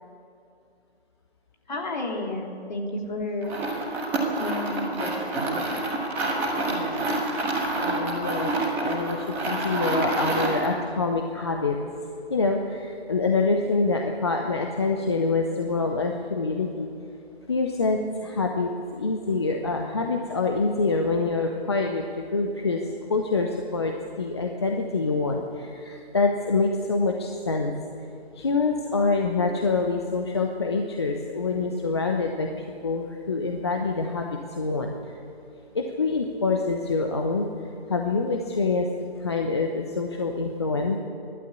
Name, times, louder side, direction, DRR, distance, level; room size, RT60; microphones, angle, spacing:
voice 1, 1.7-3.5 4.4-5.7, left 2 dB, 45° left, 0 dB, 3.4 m, -32 dB
sound 1, 3.4-10.7, right 2 dB, 5° right, 1.4 m, -27 dB
voice 2, 6.6-7.1 7.8-8.5 8.8-11.8 12.3-16.9 17.5-22.8 23.1-27.7 28.4-35.2 35.7-37.5 37.9-38.9 39.2-41.0, left 3 dB, 25° left, 2 dB, 0.9 m, -26 dB
27.0 x 12.0 x 8.3 m, 2.6 s
figure-of-eight pair, 155°, 32 cm